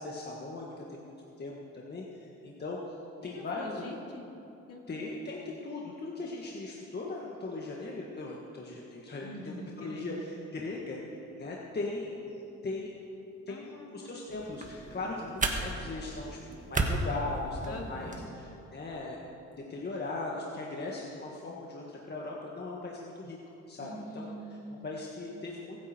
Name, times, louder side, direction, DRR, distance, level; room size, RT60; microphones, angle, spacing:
voice 1, 0.0-3.0 3.2-3.8 4.9-9.3 9.8-13.0 13.5-16.4 16.7-19.2 19.7-23.4 23.7-24.3 24.8-25.8, left 2 dB, 35° left, -3 dB, 1.8 m, -39 dB
voice 2, 3.2-4.2 4.7-4.8 5.1-5.2 9.2-10.2 13.5-14.2 15.0-15.4 17.7-18.3 23.8-25.0, equal, 50° left, -1 dB, 2.9 m, -44 dB
sound 1, 14.3-18.3, right 2 dB, 25° right, 1.7 m, -34 dB
22.0 x 9.9 x 4.6 m, 3.0 s
cardioid pair, 90°, 30 cm